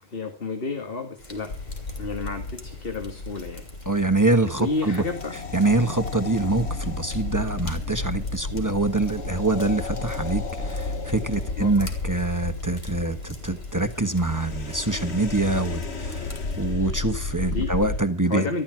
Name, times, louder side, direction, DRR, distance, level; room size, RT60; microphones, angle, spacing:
voice 1, 0.0-1.5 2.0-3.6 4.6-5.4 11.6-11.9 17.5-17.7 18.2-18.6, left 3 dB, 55° left, 2.2 m, -31 dB
sound 1, 1.2-16.7, left 1 dB, 40° left, 3.4 m, -46 dB
sound 2, 1.5-18.0, left 3 dB, 75° left, 1.8 m, -33 dB
voice 2, 3.9-5.0 5.5-16.3 16.6-18.6, right 2 dB, 15° right, 1.2 m, -25 dB
13.5 x 13.5 x 5.9 m
omnidirectional pair, 1.1 m